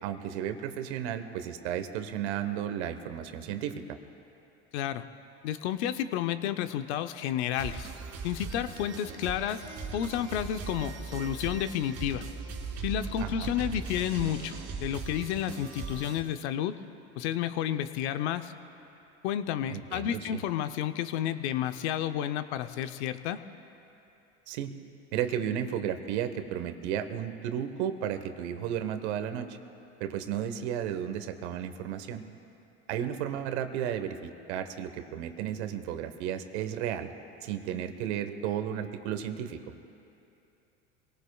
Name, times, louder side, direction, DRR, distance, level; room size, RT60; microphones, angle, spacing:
voice 1, 0.0-4.0 13.2-13.5 19.7-20.4 24.5-24.7 25.1-29.6 30.0-32.2 32.9-37.1 37.4-39.6, right 9 dB, 75° right, 8 dB, 1.2 m, -33 dB
voice 2, 4.7-5.1 5.4-7.9 8.2-12.3 12.8-16.8 17.2-18.5 19.2-23.4, left 10 dB, 75° left, 10 dB, 0.8 m, -31 dB
sound 1, 7.5-16.2, right 5 dB, 50° right, 2.5 m, -39 dB
26.0 x 18.0 x 2.4 m, 2.8 s
supercardioid pair, 100°, 33 cm